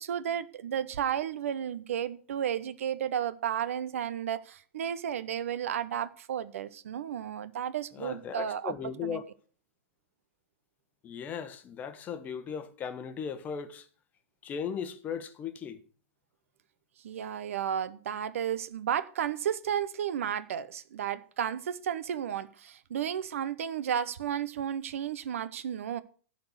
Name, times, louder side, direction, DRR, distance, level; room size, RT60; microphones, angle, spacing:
voice 1, 0.0-8.7 9.0-9.2 17.0-26.0, right 9 dB, 80° right, 0.9 m, -33 dB
voice 2, 7.9-9.2 11.0-13.9 14.4-15.8, left 7 dB, 20° left, 1.0 m, -37 dB
11.5 x 4.3 x 8.0 m
hypercardioid pair, 145°, 7 cm